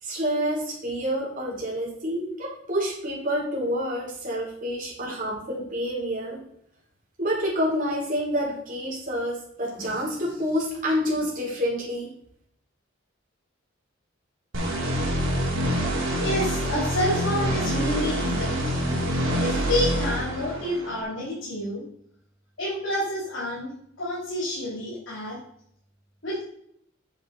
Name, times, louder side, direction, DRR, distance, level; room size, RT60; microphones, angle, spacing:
voice 1, 0.0-6.4 7.2-12.1, equal, 45° right, -4 dB, 4.1 m, -28 dB
sound 1, 14.5-21.0, equal, 90° right, 3.1 m, -26 dB
voice 2, 15.8-19.0 19.4-21.8 22.6-23.7 24.0-25.4 26.2-26.5, left 1 dB, 75° left, -6 dB, 3.4 m, -29 dB
8.9 x 6.5 x 4.3 m, 0.68 s
head